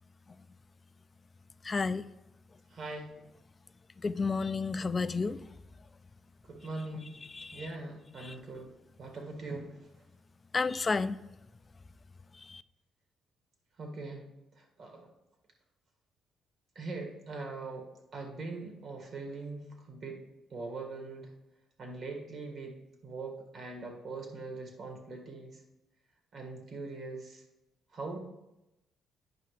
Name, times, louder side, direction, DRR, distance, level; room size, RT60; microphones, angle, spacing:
voice 1, 1.6-2.0 4.0-5.4 7.3-7.6 8.2-8.3 10.5-11.2 12.5-12.6, left 4 dB, 30° left, 14 dB, 0.3 m, -31 dB
voice 2, 2.7-3.1 6.4-7.1 7.5-8.7 9.0-9.7 13.8-14.2 14.6-15.1 16.8-17.9 18.1-20.2 20.5-21.3 21.8-22.8 23.0-25.6 26.3-27.4 27.9-28.2, right 3 dB, 60° right, 2 dB, 1.8 m, -41 dB
9.2 x 5.7 x 3.2 m, 0.93 s
cardioid pair, 90°, 0 cm